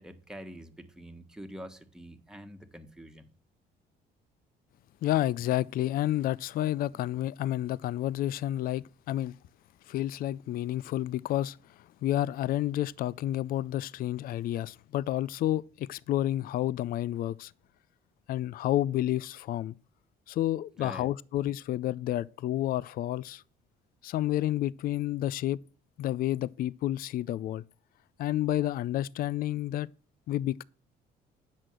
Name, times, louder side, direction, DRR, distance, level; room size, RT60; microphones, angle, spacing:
voice 1, 0.0-3.3 20.8-21.1, equal, 5° right, 1.6 m, -45 dB
voice 2, 5.0-9.4 9.9-17.5 18.3-19.7 20.3-23.4 24.0-25.6 26.0-27.6 28.2-29.9 30.3-30.6, left 13 dB, 60° left, 0.4 m, -30 dB
10.0 x 6.3 x 7.7 m
cardioid pair, 110°, 17 cm